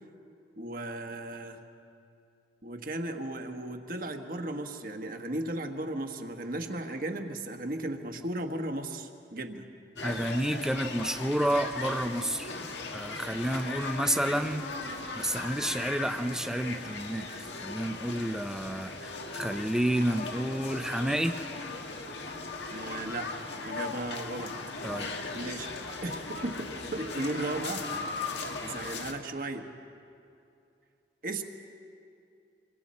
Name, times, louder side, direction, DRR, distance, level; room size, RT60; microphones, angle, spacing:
voice 1, 0.6-1.6 2.6-9.7 22.7-23.3 23.6-24.5 25.3-25.7 26.0-27.9 28.6-29.7 31.2-31.4, right 2 dB, 50° right, 5 dB, 1.3 m, -35 dB
sound 1, 10.0-29.1, left 3 dB, 85° left, 1.5 m, -38 dB
voice 2, 10.0-12.5 12.9-14.7 15.2-17.3 17.6-21.3 24.8-25.1, right 1 dB, 5° right, 7 dB, 0.6 m, -30 dB
27.5 x 22.0 x 4.3 m, 2.5 s
head